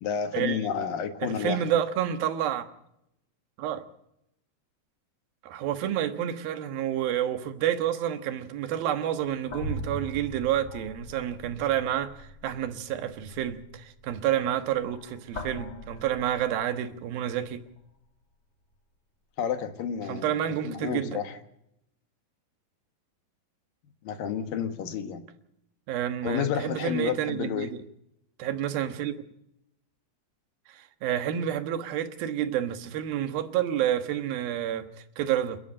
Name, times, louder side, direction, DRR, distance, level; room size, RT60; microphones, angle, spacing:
voice 1, 0.0-1.6 19.4-20.4 20.6-21.4 24.0-25.2 26.2-27.7, left 7 dB, 75° left, 3.2 m, -30 dB
voice 2, 1.2-2.7 3.6-3.9 5.4-17.6 20.1-21.2 25.9-27.8 28.4-29.2 30.7-35.6, right 10 dB, 85° right, 3.2 m, -29 dB
sound 1, 8.7-17.1 17.7-17.8 19.8-19.9, equal, 30° left, 2.8 m, -41 dB
29.5 x 10.5 x 8.6 m
omnidirectional pair, 4.1 m